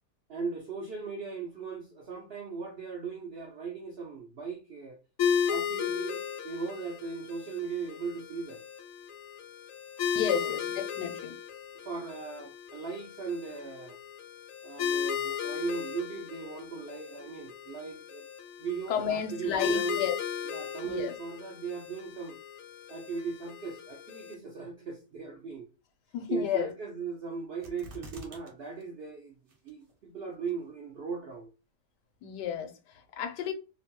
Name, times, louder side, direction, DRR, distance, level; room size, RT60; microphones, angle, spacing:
voice 1, 0.3-5.0 5.5-8.6 10.3-10.5 11.8-14.0 14.6-18.2 18.6-20.0 20.4-22.4 22.9-25.7 26.3-29.4 29.6-31.5, right 5 dB, 85° right, 0.5 m, -38 dB
sound 1, 5.2-24.3, left 8 dB, 70° left, 0.8 m, -35 dB
voice 2, 10.1-10.7 11.0-11.4 18.9-20.1 20.8-21.2 26.1-26.7 32.2-33.5, left 9 dB, 90° left, 1.2 m, -32 dB
sound 2, 27.6-28.5 28.8-28.9 29.5-29.9 30.5-30.6, right 2 dB, 50° right, 0.7 m, -46 dB
3.0 x 2.1 x 2.8 m
omnidirectional pair, 1.8 m